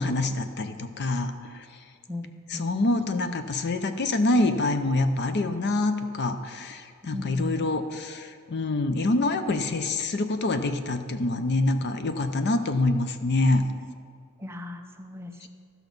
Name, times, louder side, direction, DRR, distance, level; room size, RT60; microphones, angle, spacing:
voice 1, 0.0-1.6 2.5-13.7, left 2 dB, 50° left, 9 dB, 0.6 m, -26 dB
voice 2, 2.1-2.7 7.1-7.5 14.4-15.5, left 2 dB, 10° right, 4 dB, 0.5 m, -37 dB
13.5 x 6.0 x 5.3 m, 2.1 s
head